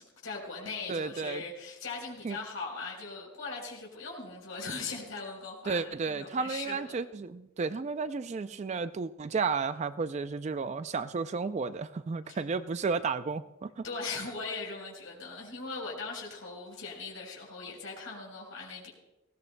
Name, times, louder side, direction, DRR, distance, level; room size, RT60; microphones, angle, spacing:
voice 1, 0.0-7.0 12.3-12.4 13.8-18.9, left 4 dB, 80° left, -2 dB, 4.0 m, -40 dB
voice 2, 0.9-1.4 2.2-2.4 5.7-13.8, right 4 dB, 35° right, 12 dB, 0.3 m, -33 dB
19.5 x 16.5 x 2.2 m, 0.96 s
head